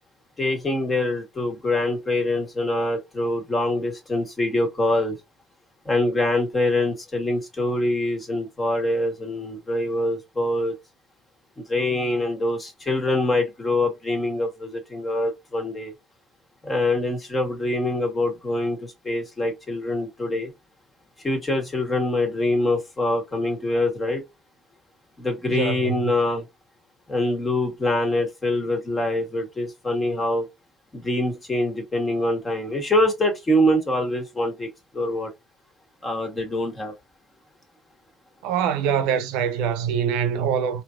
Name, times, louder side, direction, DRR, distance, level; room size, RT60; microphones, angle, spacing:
voice 1, 0.4-5.1 5.8-10.7 11.6-15.9 16.6-20.5 21.2-24.2 25.2-26.4 27.1-30.5 30.9-35.3 36.0-36.9, left 1 dB, 25° left, 1.5 m, -24 dB
voice 2, 25.5-25.9 38.4-40.8, right 8 dB, 80° right, 0.6 m, -24 dB
3.2 x 2.7 x 2.5 m
supercardioid pair, 75°, 0 cm